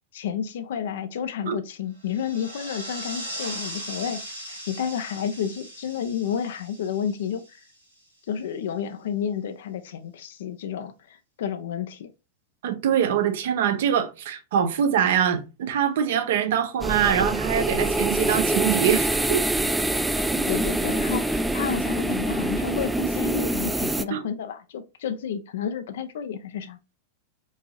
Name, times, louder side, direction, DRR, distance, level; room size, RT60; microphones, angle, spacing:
voice 1, 0.1-4.2 4.5-7.6 8.3-12.1 20.3-26.8, left 8 dB, 60° left, 0.5 m, -31 dB
sound 1, 2.0-7.8, equal, 80° right, 1.2 m, -38 dB
voice 2, 12.6-19.4 24.1-24.2, right 9 dB, 55° right, 0.7 m, -23 dB
sound 2, 16.8-24.0, right 2 dB, 5° right, 0.3 m, -25 dB
4.6 x 2.8 x 2.9 m
figure-of-eight pair, 90°, 0 cm